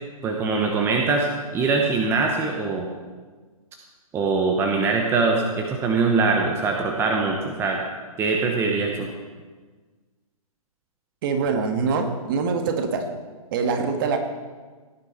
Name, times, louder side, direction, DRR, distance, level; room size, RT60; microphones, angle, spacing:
voice 1, 0.2-1.3 1.5-2.9 4.1-7.8 8.2-9.1, right 4 dB, 15° right, 1 dB, 1.0 m, -22 dB
voice 2, 11.2-13.1 13.5-14.2, right 5 dB, 35° right, 5 dB, 1.5 m, -24 dB
17.0 x 10.0 x 4.4 m, 1.4 s
figure-of-eight pair, 130°, 19 cm